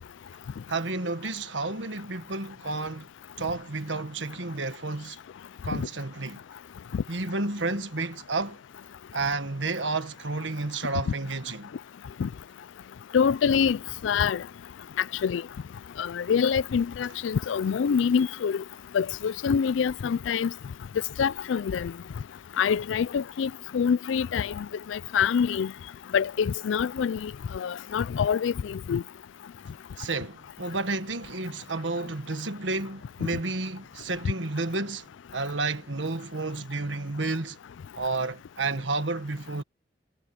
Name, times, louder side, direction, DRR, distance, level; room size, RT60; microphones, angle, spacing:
voice 1, 0.7-3.1 3.4-5.2 5.6-6.4 7.1-8.6 9.1-11.7 30.0-35.1 35.3-37.6 38.0-39.6, right 3 dB, 85° right, 1.6 m, -31 dB
voice 2, 13.1-13.8 14.0-14.4 15.2-15.4 16.0-18.6 18.9-20.5 21.2-21.9 22.6-25.7 26.1-29.0, left 7 dB, 85° left, 0.4 m, -25 dB
head